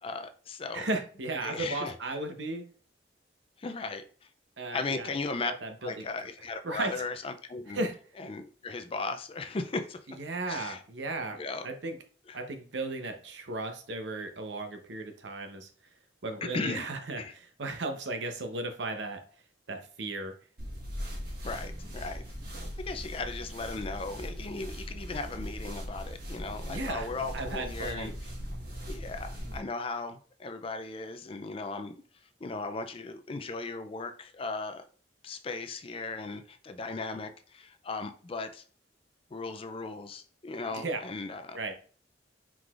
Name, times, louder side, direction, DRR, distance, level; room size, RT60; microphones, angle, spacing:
voice 1, 0.0-0.9 1.4-1.9 3.6-4.0 4.7-5.5 5.8-7.8 8.2-10.0 10.5-10.8 11.4-11.7 12.3-12.4 16.5-16.9 17.2-17.3 21.4-22.2 22.8-28.1 28.9-32.0 32.4-34.8 35.2-38.6 39.3-41.7, left 3 dB, 30° left, 8 dB, 0.4 m, -37 dB
voice 2, 0.7-2.6 4.6-5.2 5.6-6.1 6.6-6.9 7.7-7.9 10.1-12.0 12.3-15.7 16.2-19.2 19.7-20.3 26.7-27.1 27.3-28.1 40.7-41.0 41.5-41.7, right 2 dB, 80° right, 6 dB, 0.8 m, -35 dB
sound 1, 20.6-29.6, equal, 55° right, 1.5 m, -39 dB
4.7 x 3.8 x 2.4 m, 0.42 s
head